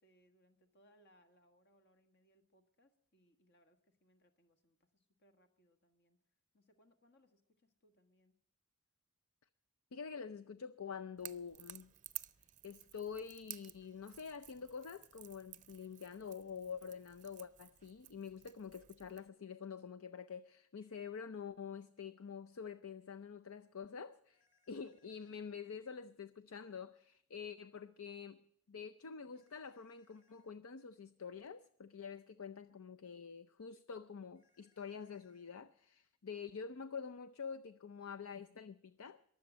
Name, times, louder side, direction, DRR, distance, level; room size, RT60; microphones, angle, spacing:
voice 1, 0.0-6.2 6.5-8.3, equal, 50° left, 1.7 m, -72 dB
voice 2, 9.9-11.9 12.6-24.4 24.7-28.4 28.7-39.2, left 6 dB, 65° left, 0.5 m, -47 dB
Crackle / Crack, 11.2-19.3, right 13 dB, 35° right, 0.6 m, -54 dB
sound 1, 24.3-25.5 29.3-30.5 34.3-35.5, left 4 dB, 15° left, 3.1 m, -77 dB
22.0 x 7.8 x 6.2 m
head